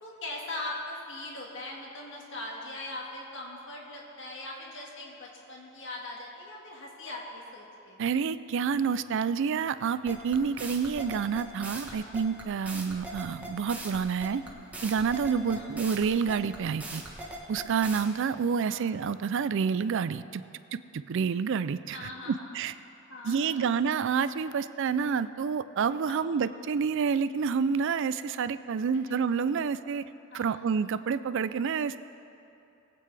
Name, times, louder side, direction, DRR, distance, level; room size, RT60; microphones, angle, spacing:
voice 1, 0.0-8.0 11.9-12.2 15.5-15.8 18.6-18.9 21.9-22.6 23.1-23.7 26.1-26.3 28.9-29.2 30.3-30.7, left 2 dB, 60° left, -2 dB, 1.8 m, -41 dB
voice 2, 8.0-14.4 14.8-17.0 17.5-20.4 20.7-22.7 23.2-30.0 30.3-32.0, right 6 dB, 60° right, 14 dB, 0.4 m, -28 dB
sound 1, 10.1-18.0, right 2 dB, 5° right, 1.3 m, -40 dB
21.0 x 8.5 x 3.4 m, 2.8 s
head